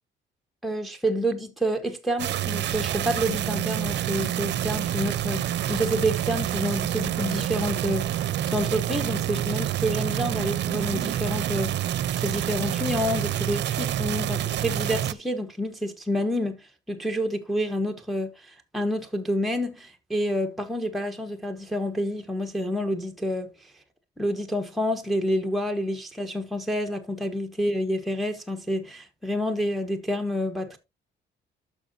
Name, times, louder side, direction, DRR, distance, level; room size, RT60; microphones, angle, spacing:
voice 1, 0.6-11.9 12.2-23.7 24.2-30.8, equal, ahead, 1.1 m, -28 dB
sound 1, 2.2-15.1, right 11 dB, 60° right, 0.6 m, -27 dB
12.0 x 4.8 x 2.7 m
cardioid pair, 90°, 20 cm